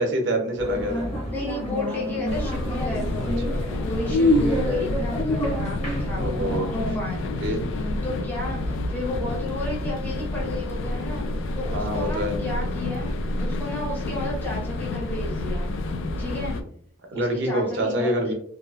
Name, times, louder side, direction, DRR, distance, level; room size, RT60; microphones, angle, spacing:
voice 1, 0.0-1.1 3.5-3.7 4.2-4.6 6.1-6.7 7.4-7.7 11.7-12.4 17.1-18.3, right 1 dB, 60° right, 3 dB, 0.5 m, -26 dB
sound 1, 0.6-7.0, left 1 dB, 30° left, 1.0 m, -27 dB
voice 2, 1.3-16.6 17.1-18.3, left 1 dB, 10° left, -4 dB, 0.6 m, -33 dB
sound 2, 2.3-16.6, left 2 dB, 70° left, 0.3 m, -29 dB
2.6 x 2.3 x 2.2 m, 0.63 s
head